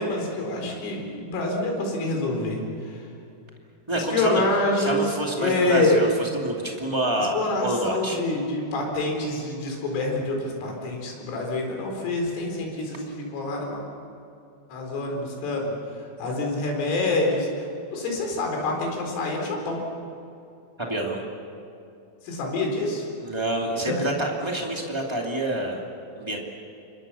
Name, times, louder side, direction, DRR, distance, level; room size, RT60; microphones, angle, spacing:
voice 1, 0.0-3.0 4.0-5.0 5.4-6.0 7.2-13.8 14.7-15.7 16.2-19.8 22.2-23.1 23.9-24.0, left 2 dB, 80° left, 1 dB, 6.9 m, -26 dB
voice 2, 3.9-4.4 4.8-8.2 20.8-21.2 23.2-25.8 26.2-26.4, right 1 dB, 20° right, -1 dB, 0.7 m, -27 dB
28.5 x 23.5 x 7.1 m, 2.7 s
omnidirectional pair, 5.7 m